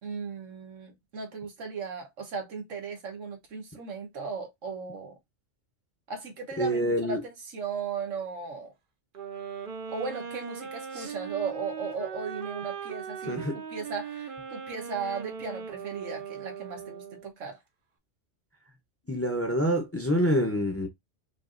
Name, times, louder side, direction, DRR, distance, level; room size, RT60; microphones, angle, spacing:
voice 1, 0.0-5.2 6.1-8.7 9.9-13.4 13.7-17.6, right 5 dB, 85° right, 1.5 m, -36 dB
voice 2, 6.6-7.2 10.9-11.1 13.3-13.6 19.1-20.9, equal, 15° left, 0.7 m, -26 dB
sound 1, 9.1-17.3, right 6 dB, 50° right, 0.8 m, -39 dB
5.2 x 2.6 x 2.5 m
omnidirectional pair, 1.3 m